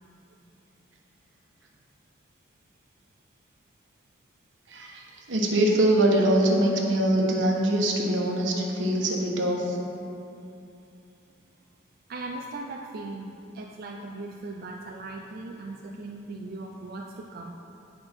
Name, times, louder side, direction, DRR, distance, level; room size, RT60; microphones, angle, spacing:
voice 1, 4.7-9.8, right 1 dB, 85° right, -1 dB, 1.1 m, -23 dB
voice 2, 12.1-17.5, right 2 dB, 55° right, 0 dB, 0.4 m, -38 dB
8.8 x 5.2 x 4.4 m, 2.7 s
head